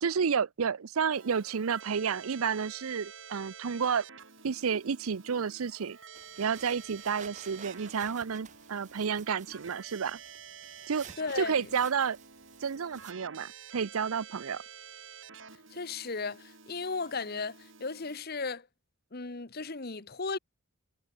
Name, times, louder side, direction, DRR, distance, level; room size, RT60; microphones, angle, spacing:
voice 1, 0.0-4.1 4.4-6.0 6.4-10.2 10.9-11.1 11.4-12.2 12.6-14.6, right 6 dB, 90° right, 0.6 m, -31 dB
Keyboard (musical), 1.1-18.2, right 7 dB, 65° right, 6.5 m, -50 dB
sound 1, 6.1-13.1, right 6 dB, 35° right, 2.4 m, -53 dB
voice 2, 11.2-11.7 15.7-18.7 19.1-20.4, left 4 dB, 45° left, 1.3 m, -35 dB
head